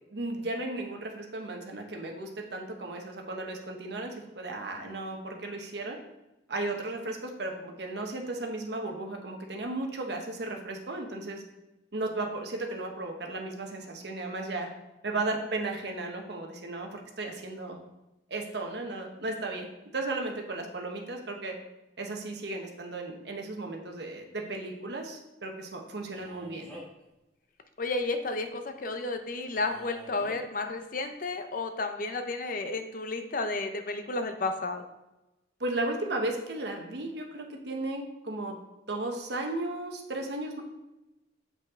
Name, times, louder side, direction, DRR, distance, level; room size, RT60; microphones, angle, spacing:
voice 1, 0.1-6.0 6.5-11.4 11.9-14.7 15.0-17.8 18.3-19.7 19.9-21.5 22.0-26.7 35.6-38.6 38.9-40.6, right 2 dB, 60° right, 2 dB, 1.1 m, -35 dB
Male speech man speaking, 26.2-27.0 29.5-30.4, right 1 dB, 5° left, 1.9 m, -47 dB
voice 2, 27.8-34.8, left 3 dB, 45° left, 7 dB, 0.6 m, -32 dB
7.8 x 5.4 x 3.7 m, 0.96 s
head